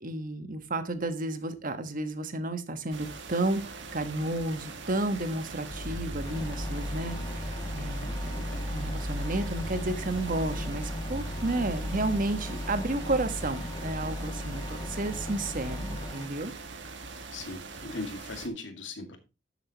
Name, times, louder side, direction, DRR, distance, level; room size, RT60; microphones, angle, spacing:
voice 1, 0.0-16.5, right 2 dB, 45° right, 9 dB, 1.3 m, -32 dB
sound 1, 2.9-18.5, right 4 dB, 70° right, 1.7 m, -43 dB
sound 2, 5.7-16.1, equal, 55° left, 1.8 m, -36 dB
sound 3, 6.3-16.3, left 1 dB, 25° left, 1.7 m, -42 dB
voice 2, 17.3-19.2, left 2 dB, 80° left, 6 dB, 2.2 m, -38 dB
12.5 x 7.5 x 3.0 m, 0.28 s
head